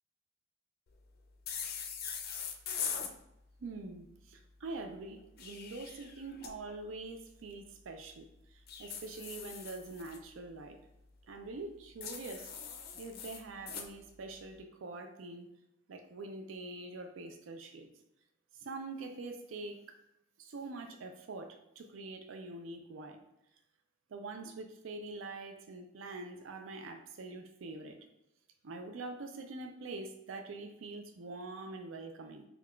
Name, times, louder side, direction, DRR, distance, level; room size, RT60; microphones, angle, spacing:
sound 1, 1.5-3.1 5.2-6.5 8.7-10.2 12.0-13.9, left 7 dB, 50° left, 0.4 m, -41 dB
voice 1, 3.6-10.8 11.3-15.5 15.9-17.9 18.6-20.0 20.4-23.2 24.1-28.0 28.6-32.5, right 3 dB, 75° right, 5 dB, 0.4 m, -45 dB
5.3 x 2.3 x 2.2 m, 0.84 s
head